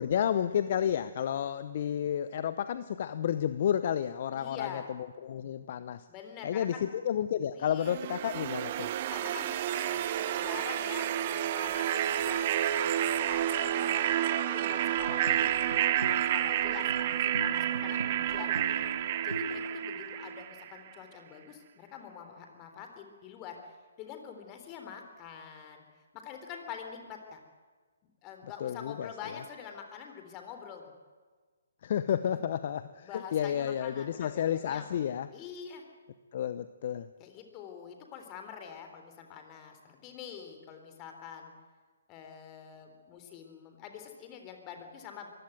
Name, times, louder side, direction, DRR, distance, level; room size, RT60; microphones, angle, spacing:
voice 1, 0.0-6.1 6.4-8.9 28.6-29.1 31.8-35.3 36.3-37.1, left 9 dB, 45° left, 13 dB, 0.8 m, -31 dB
voice 2, 4.3-4.9 6.1-6.9 7.5-8.0 9.1-14.0 14.5-18.6 19.2-25.8 26.1-27.4 28.0-30.8 32.3-32.4 33.0-35.0 35.3-35.8 37.2-41.5 42.1-45.3, left 7 dB, 25° left, 5 dB, 3.8 m, -46 dB
sound 1, 7.9-20.8, right 11 dB, 40° right, 1.0 m, -30 dB
sound 2, 14.9-20.4, right 2 dB, 85° right, 0.9 m, -40 dB
23.0 x 16.0 x 9.4 m, 1.5 s
figure-of-eight pair, 135°, 0 cm